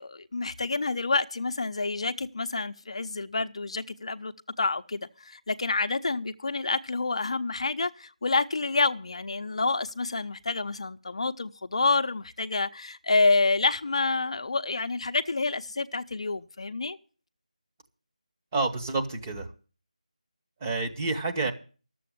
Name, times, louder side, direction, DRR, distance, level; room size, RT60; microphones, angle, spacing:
voice 1, 0.0-17.0, left 3 dB, 50° left, 0.7 m, -28 dB
voice 2, 18.5-19.5 20.6-21.5, right 3 dB, 20° right, 1.2 m, -28 dB
12.5 x 7.7 x 10.0 m
figure-of-eight pair, 170°, 4 cm